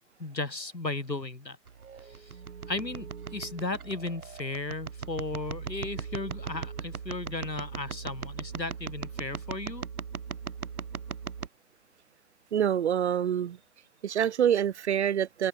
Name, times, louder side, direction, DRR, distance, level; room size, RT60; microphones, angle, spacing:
voice 1, 0.2-1.6 2.7-9.8, left 2 dB, 85° left, 5.4 m, -35 dB
sound 1, 1.7-11.5, right 6 dB, 60° right, 2.6 m, -39 dB
voice 2, 12.5-13.6 14.0-15.5, right 9 dB, 40° right, 3.6 m, -26 dB
figure-of-eight pair, 140°, 49 cm